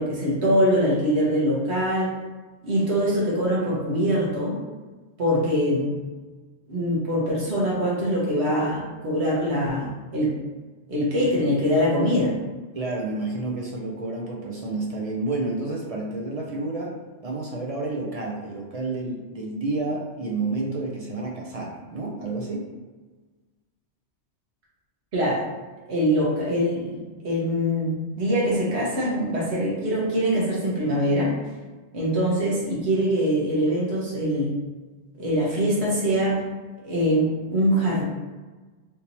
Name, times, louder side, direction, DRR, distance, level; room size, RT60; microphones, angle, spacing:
voice 1, 0.0-2.1 2.6-4.5 5.2-5.9 6.7-10.3 10.9-12.4 25.1-25.4 25.9-27.0 27.2-31.3 31.9-34.6 35.2-36.4 36.8-38.0, equal, 65° right, -5 dB, 1.3 m, -23 dB
voice 2, 12.7-16.9 17.2-22.6, right 2 dB, 45° right, -2 dB, 0.5 m, -30 dB
3.5 x 2.7 x 2.9 m, 1.3 s
omnidirectional pair, 1.2 m